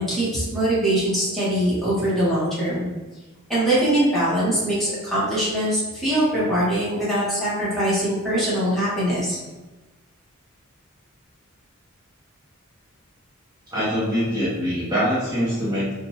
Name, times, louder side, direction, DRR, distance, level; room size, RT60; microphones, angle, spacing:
voice 1, 0.0-2.9 3.5-9.4, right 1 dB, ahead, -11 dB, 1.4 m, -22 dB
voice 2, 13.7-15.9, equal, 20° right, -11 dB, 1.1 m, -23 dB
3.7 x 2.5 x 3.0 m, 1.2 s
head